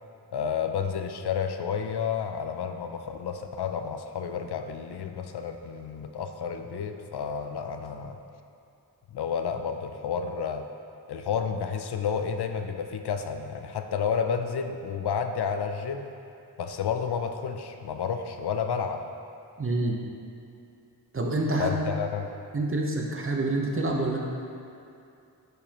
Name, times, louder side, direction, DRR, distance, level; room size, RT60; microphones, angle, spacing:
voice 1, 0.3-8.2 9.1-10.7 11.1-16.1 16.6-19.0 21.6-22.3, left 6 dB, 80° left, 7 dB, 0.5 m, -31 dB
voice 2, 19.6-20.0 21.1-21.8 22.5-24.2, right 2 dB, 35° right, 0 dB, 0.8 m, -27 dB
9.1 x 5.0 x 2.9 m, 2.6 s
wide cardioid pair, 85°, 39 cm